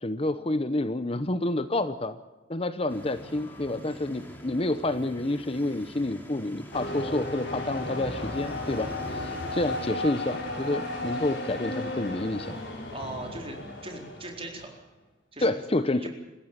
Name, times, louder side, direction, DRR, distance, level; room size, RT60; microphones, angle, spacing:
voice 1, 0.0-2.2 2.5-12.6 15.4-16.1, left 2 dB, 30° left, 11 dB, 0.9 m, -29 dB
sound 1, 2.9-9.9, equal, 10° left, 3.8 m, -45 dB
sound 2, 6.7-14.6, left 1 dB, 80° left, 6.3 m, -34 dB
voice 2, 12.9-14.7 15.3-15.7 15.9-16.1, right 2 dB, 30° right, 2 dB, 4.2 m, -39 dB
27.0 x 15.5 x 7.4 m, 1.1 s
head